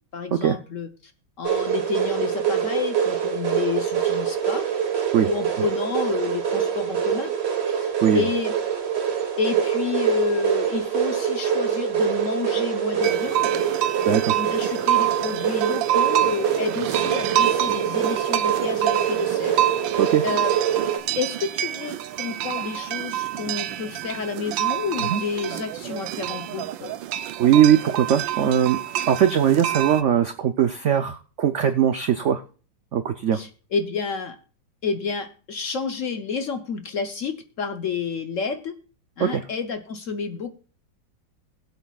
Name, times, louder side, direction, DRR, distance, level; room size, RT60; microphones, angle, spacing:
voice 1, 0.1-1.1 1.4-4.6 5.2-7.3 7.8-8.5 9.4-13.6 14.4-19.6 19.9-20.5 21.2-26.9 33.3-34.4 34.8-38.7 39.2-40.5, left 6 dB, 55° left, 8 dB, 0.9 m, -30 dB
sound 1, 1.4-21.0, right 8 dB, 40° right, 1.3 m, -25 dB
sound 2, 13.0-30.0, right 13 dB, 90° right, 1.4 m, -27 dB
voice 2, 14.1-14.4 20.0-20.2 25.1-25.2 27.4-28.8 29.1-32.4 32.9-33.4 39.2-39.4, right 9 dB, 70° right, 8 dB, 0.6 m, -20 dB
20.5 x 8.2 x 2.3 m, 0.38 s
omnidirectional pair, 2.0 m